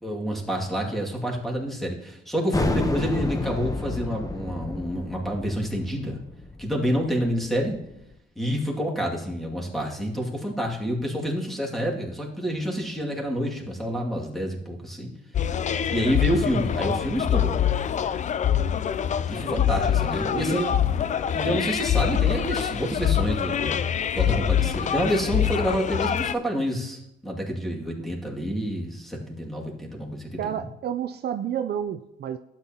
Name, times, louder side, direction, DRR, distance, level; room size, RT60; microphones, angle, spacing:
voice 1, 0.0-6.2 6.6-7.8 8.4-15.1 15.9-17.6 19.3-20.8 21.3-30.6, equal, ahead, -2 dB, 2.2 m, -28 dB
sound 1, 2.5-7.8, left 2 dB, 15° left, 0.8 m, -30 dB
sound 2, 15.3-26.3, left 9 dB, 40° left, 0.4 m, -25 dB
voice 2, 20.3-20.6 28.0-28.1 30.4-32.4, right 9 dB, 55° right, 9 dB, 0.5 m, -30 dB
12.0 x 8.8 x 2.9 m, 0.84 s
cardioid pair, 90°, 20 cm